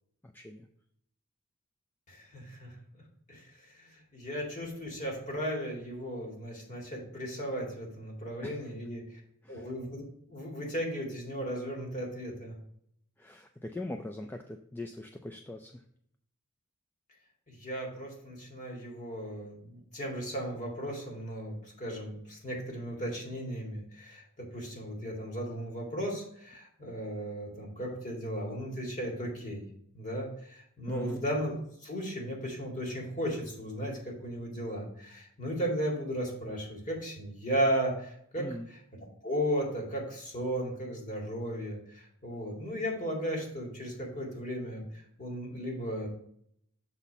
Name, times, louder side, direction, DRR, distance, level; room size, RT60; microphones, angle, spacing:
voice 1, 0.2-0.7 8.4-8.6 9.4-9.7 13.2-15.7 30.9-31.2 38.4-38.7, left 1 dB, 10° left, 4 dB, 0.3 m, -41 dB
voice 2, 2.1-2.7 3.3-9.2 9.5-12.5 17.5-29.7 29.9-38.8 39.2-44.8 45.2-46.1, equal, 35° left, -1 dB, 2.3 m, -35 dB
7.1 x 4.2 x 5.5 m, 0.69 s
head